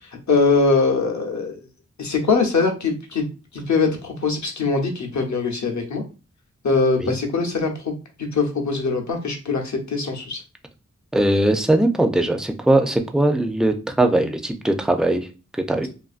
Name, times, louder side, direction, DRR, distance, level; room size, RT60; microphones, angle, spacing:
voice 1, 0.3-1.6 2.0-3.3 3.5-6.0 6.6-10.4, left 4 dB, 70° left, 3 dB, 0.7 m, -22 dB
voice 2, 11.1-15.3 15.7-15.9, right 1 dB, ahead, 5 dB, 0.3 m, -20 dB
2.5 x 2.5 x 2.4 m, 0.33 s
wide cardioid pair, 90°, 30 cm